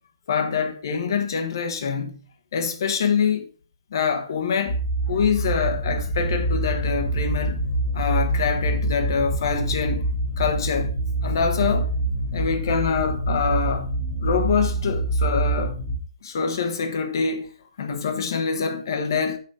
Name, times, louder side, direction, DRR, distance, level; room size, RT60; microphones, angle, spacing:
voice 1, 0.3-2.2 2.5-3.5 3.9-4.8 5.1-7.6 7.9-10.1 10.4-10.9 11.2-11.9 12.3-13.9 14.2-15.8 16.2-19.4, left 6 dB, 40° left, 1.4 m, -25 dB
sound 1, 4.7-16.0, right 1 dB, 5° right, 1.6 m, -25 dB
6.9 x 5.3 x 4.8 m
hypercardioid pair, 170°, 3 cm